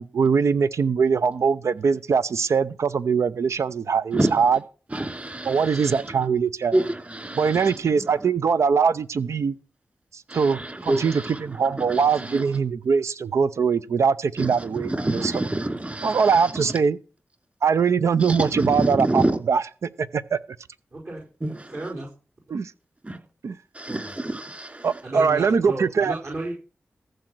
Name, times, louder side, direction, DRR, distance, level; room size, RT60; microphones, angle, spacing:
voice 1, 0.0-4.6 5.5-6.8 7.4-9.5 10.1-11.1 11.4-15.3 16.0-17.0 17.6-20.4 22.5-22.7 23.4-23.6 24.8-26.1, right 6 dB, 80° right, 0.6 m, -22 dB
voice 2, 4.9-6.3 6.7-8.3 10.3-12.5 14.4-16.8 18.2-19.4 21.4-21.9 23.0-23.2 23.7-25.0, right 1 dB, 30° right, 3.0 m, -28 dB
voice 3, 20.9-21.2 21.7-22.1 23.9-24.1 25.0-26.5, right 2 dB, 60° right, 4.7 m, -33 dB
14.5 x 6.6 x 6.2 m
cardioid pair, 50°, 5 cm